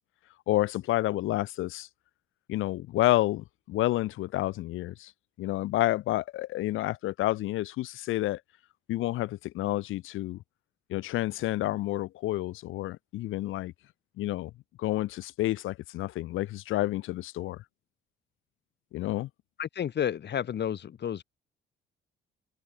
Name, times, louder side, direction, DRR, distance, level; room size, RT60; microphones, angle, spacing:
voice 1, 0.5-1.9 2.5-5.1 5.4-8.4 8.9-10.4 10.9-13.7 14.2-14.5 14.8-17.6 18.9-19.3, left 16 dB, 90° left, 2.4 m, -29 dB
voice 2, 19.6-21.2, left 9 dB, 60° left, 3.5 m, -31 dB
cardioid pair, 90°, 20 cm